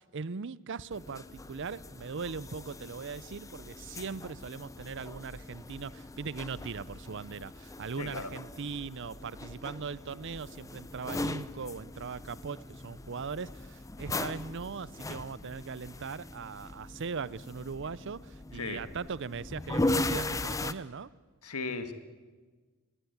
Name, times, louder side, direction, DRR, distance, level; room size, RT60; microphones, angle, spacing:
voice 1, 0.0-21.1, right 5 dB, 55° right, 20 dB, 0.6 m, -40 dB
sound 1, 0.9-20.7, left 2 dB, 15° left, 0.6 m, -39 dB
voice 2, 8.0-8.3 18.6-18.8 21.4-21.9, left 4 dB, 85° left, 10 dB, 1.9 m, -36 dB
22.0 x 17.0 x 9.4 m, 1.4 s
head